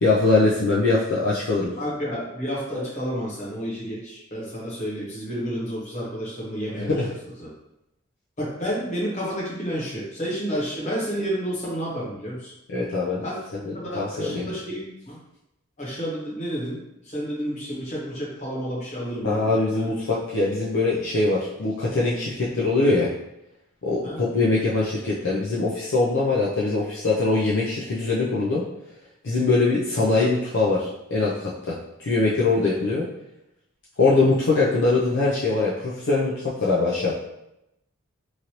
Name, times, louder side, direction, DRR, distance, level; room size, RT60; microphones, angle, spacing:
voice 1, 0.0-1.7 6.8-7.1 12.7-13.2 13.5-14.5 19.2-23.1 23.8-28.6 29.2-31.3 31.7-33.1 34.0-37.1, left 3 dB, 60° left, -6 dB, 0.5 m, -22 dB
voice 2, 1.8-6.9 7.4-7.5 8.4-12.5 13.2-13.4 13.7-15.2 15.8-16.8 17.0-19.9 24.0-24.2, equal, 35° left, -6 dB, 1.1 m, -30 dB
3.1 x 2.6 x 2.8 m, 0.86 s
head